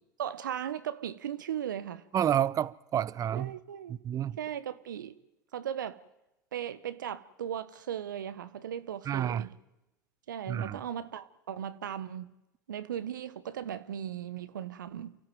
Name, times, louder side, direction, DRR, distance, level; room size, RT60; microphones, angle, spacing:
voice 1, 0.2-2.0 3.4-4.0 4.4-5.1 5.5-6.0 6.5-9.5 10.3-12.3 12.7-15.2, right 9 dB, 80° right, 1.0 m, -37 dB
voice 2, 2.1-3.5 3.9-4.4 9.1-9.5 10.5-10.8, right 10 dB, 35° right, 0.8 m, -29 dB
29.5 x 13.5 x 9.2 m
hypercardioid pair, 85°, 10 cm